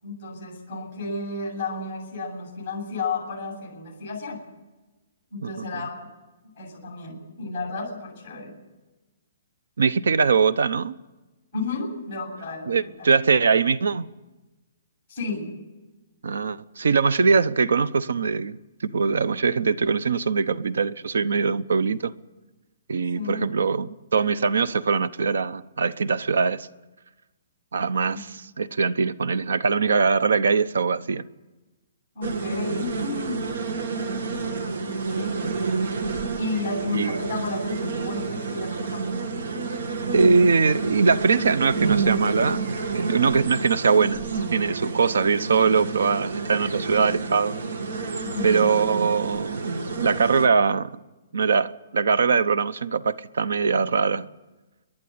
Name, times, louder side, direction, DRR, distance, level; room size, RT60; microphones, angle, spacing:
voice 1, 0.0-4.4 5.3-6.1 6.6-8.5 11.5-12.7 13.0-13.1 15.1-15.5 23.1-23.5 28.1-28.2 32.1-33.6 34.2-35.4 36.4-39.2 48.2-48.7, left 3 dB, 15° left, 7.4 m, -32 dB
voice 2, 9.8-11.0 12.7-14.1 16.2-18.6 18.8-22.1 22.9-26.7 27.7-31.3 36.9-37.2 40.1-44.2 44.5-47.6 48.4-50.9 51.3-54.3, right 5 dB, 85° right, 0.9 m, -22 dB
sound 1, 32.2-50.5, right 4 dB, 60° right, 2.0 m, -29 dB
28.5 x 11.0 x 9.6 m
hypercardioid pair, 175°, 0 cm